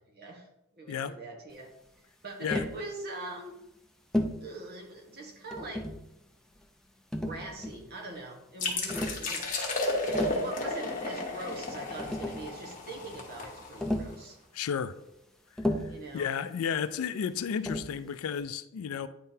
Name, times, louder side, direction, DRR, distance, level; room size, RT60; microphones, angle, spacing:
voice 1, 0.1-0.5 0.8-1.7 2.2-3.6 4.4-5.9 7.1-9.7 10.0-14.4 15.9-16.3, right 2 dB, 45° right, 1.2 m, -42 dB
Tap, 2.5-2.8 4.1-4.5 5.5-6.1 7.1-7.9 8.9-9.2 9.9-10.5 11.6-11.7 12.0-12.5 13.8-14.2 15.6-16.0 17.7-18.0, left 1 dB, 5° left, 0.4 m, -32 dB
sound 1, 8.6-14.1, left 2 dB, 40° left, 1.1 m, -33 dB
voice 2, 14.5-14.9 16.1-19.1, left 7 dB, 70° left, 0.3 m, -32 dB
9.4 x 3.8 x 2.7 m
head